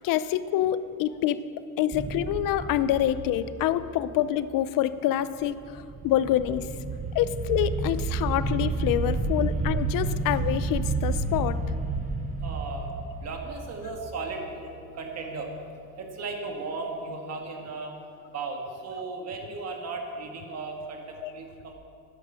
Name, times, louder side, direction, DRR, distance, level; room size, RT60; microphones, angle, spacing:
voice 1, 0.0-1.4 1.8-6.7 7.1-11.6 21.2-21.3, left 12 dB, 65° left, 14 dB, 0.6 m, -26 dB
sound 1, 1.9-4.2 5.6-14.5, right 3 dB, 20° right, 0.8 m, -30 dB
voice 2, 12.4-12.9 13.2-14.7 15.0-15.5 16.0-17.9 18.3-21.7, right 3 dB, 45° right, 2 dB, 1.8 m, -36 dB
12.5 x 10.0 x 6.3 m, 2.5 s
cardioid pair, 155°, 36 cm